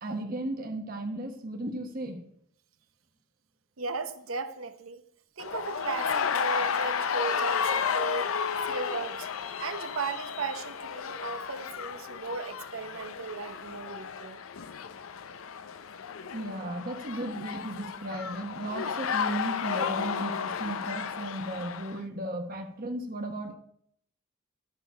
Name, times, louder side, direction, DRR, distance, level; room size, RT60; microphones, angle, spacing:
voice 1, 0.0-2.2 16.3-23.5, right 1 dB, 45° right, 1.1 m, -35 dB
voice 2, 3.8-5.0 5.4-8.4 8.6-9.3 9.6-14.4, right 4 dB, 90° right, 0.9 m, -36 dB
sound 1, 5.4-22.0, left 6 dB, 85° left, 0.6 m, -33 dB
12.5 x 5.8 x 5.6 m
head